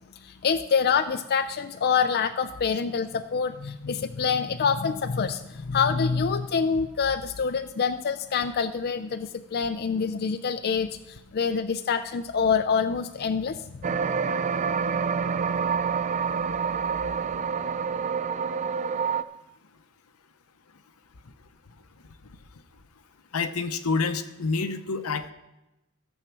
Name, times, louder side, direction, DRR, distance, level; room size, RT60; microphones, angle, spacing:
voice 1, 0.2-13.6, left 6 dB, 45° left, 8 dB, 0.4 m, -26 dB
sound 1, 13.8-19.2, right 6 dB, 35° right, 0.4 m, -27 dB
voice 2, 23.3-25.3, left 4 dB, 80° left, 9 dB, 0.8 m, -28 dB
14.5 x 7.3 x 5.9 m, 0.98 s
head